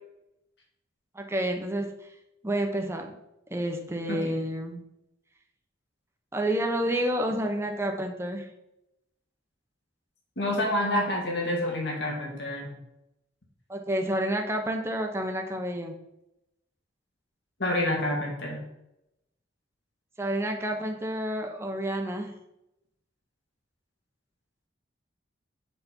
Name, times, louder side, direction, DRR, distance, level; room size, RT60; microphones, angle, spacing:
voice 1, 1.1-1.9 2.4-3.1 3.5-4.8 6.3-8.5 13.7-15.9 20.2-22.3, right 1 dB, 15° right, 3 dB, 0.9 m, -29 dB
voice 2, 10.4-12.7 17.6-18.6, left 1 dB, 60° left, -1 dB, 2.2 m, -28 dB
8.3 x 4.2 x 5.4 m, 0.86 s
head